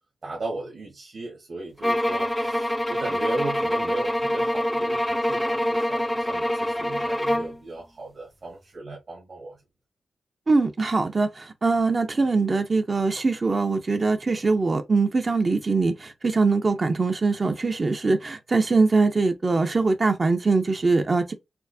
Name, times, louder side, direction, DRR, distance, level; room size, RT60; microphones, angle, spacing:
voice 1, 0.2-9.6, right 2 dB, 60° right, 1.4 m, -36 dB
sound 1, 1.8-7.6, equal, 5° left, 0.3 m, -25 dB
voice 2, 10.5-21.3, right 3 dB, 45° right, 0.5 m, -22 dB
4.3 x 2.0 x 2.6 m
cardioid pair, 55°, 0 cm